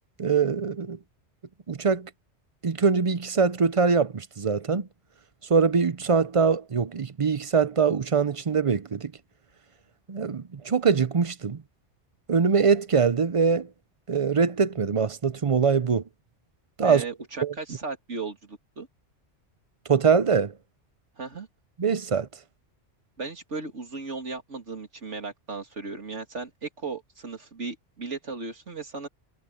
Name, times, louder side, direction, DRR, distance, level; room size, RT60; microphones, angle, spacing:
voice 1, 0.2-1.0 1.7-2.1 2.6-4.9 5.5-9.1 10.1-11.6 12.3-13.7 14.1-16.0 16.8-17.0 17.4-17.5 19.9-20.5 21.8-22.3, right 5 dB, 35° right, 0.6 m, -23 dB
voice 2, 16.8-18.9 21.2-21.5 23.2-29.1, right 4 dB, 85° right, 3.1 m, -36 dB
omnidirectional pair, 1.2 m